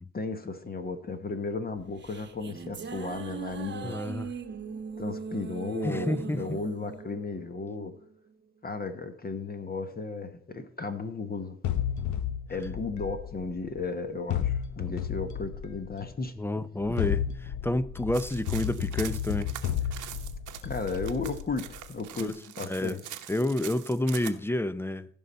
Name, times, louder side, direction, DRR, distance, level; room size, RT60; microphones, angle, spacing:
voice 1, 0.1-4.0 5.0-7.9 8.6-11.6 12.5-16.6 20.6-23.0, left 4 dB, 30° left, 1.1 m, -35 dB
sound 1, 1.8-8.3, right 5 dB, 35° right, 1.1 m, -40 dB
voice 2, 3.8-4.3 5.8-6.6 14.9-15.0 16.4-19.5 22.2-22.3 22.6-23.0 23.3-25.1, left 1 dB, 10° left, 0.5 m, -29 dB
sound 2, 11.6-13.8 14.3-16.1 16.8-21.9, left 9 dB, 70° left, 0.9 m, -32 dB
sound 3, 18.1-24.3, right 12 dB, 80° right, 1.0 m, -43 dB
15.5 x 5.5 x 4.2 m
cardioid pair, 90°, 30 cm